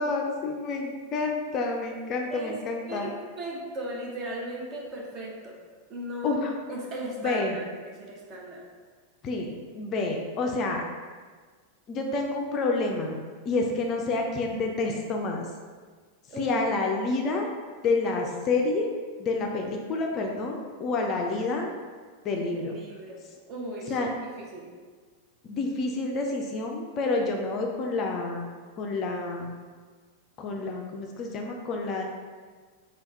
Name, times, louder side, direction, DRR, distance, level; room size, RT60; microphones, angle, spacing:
voice 1, 0.0-3.1 6.2-6.5 7.2-7.6 9.2-9.5 9.7-10.8 11.9-13.2 13.5-15.5 16.4-17.5 17.8-18.9 19.2-21.7 22.2-22.7 23.9-24.1 25.5-28.4 28.8-29.5 30.4-32.0, left 3 dB, 35° left, 1 dB, 0.4 m, -28 dB
voice 2, 3.4-5.6 5.9-6.3 6.7-8.6 16.3-16.6 22.5-23.2 23.5-24.0 24.4-24.7, right 1 dB, 30° right, -2 dB, 0.8 m, -37 dB
3.4 x 2.3 x 4.1 m, 1.5 s
figure-of-eight pair, 90°, 0 cm